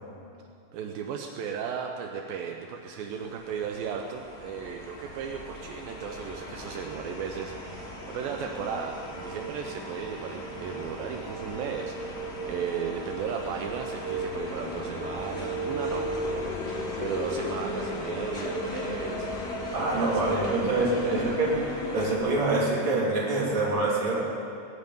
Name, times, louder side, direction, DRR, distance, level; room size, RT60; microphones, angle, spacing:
voice 1, 0.7-19.3 19.8-21.3, right 7 dB, 80° right, 3 dB, 2.5 m, -36 dB
sound 1, 3.2-22.2, equal, 35° left, 1.0 m, -35 dB
voice 2, 19.7-21.6 21.9-24.2, right 2 dB, 35° right, -5 dB, 3.5 m, -25 dB
20.5 x 7.1 x 9.1 m, 2.6 s
omnidirectional pair, 4.2 m